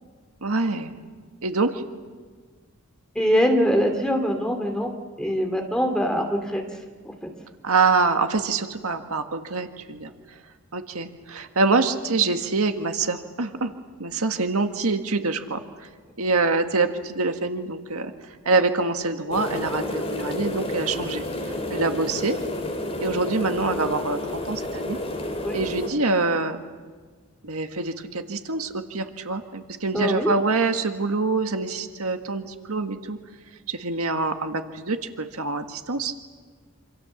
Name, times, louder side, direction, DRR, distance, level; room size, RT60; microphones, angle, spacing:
voice 1, 0.4-0.9 1.4-1.7 7.6-10.1 10.7-13.7 14.0-15.6 16.2-18.1 18.5-21.2 21.7-22.4 23.0-25.0 25.5-26.6 27.4-33.2 33.7-36.1, right 3 dB, 80° right, 6 dB, 1.7 m, -25 dB
voice 2, 3.1-4.9 5.2-6.6 7.0-7.1 25.4-25.6 29.9-30.3, equal, 5° left, 3 dB, 2.7 m, -23 dB
sound 1, 19.3-25.9, left 1 dB, 25° left, 3.3 m, -30 dB
27.5 x 27.0 x 7.2 m, 1.5 s
head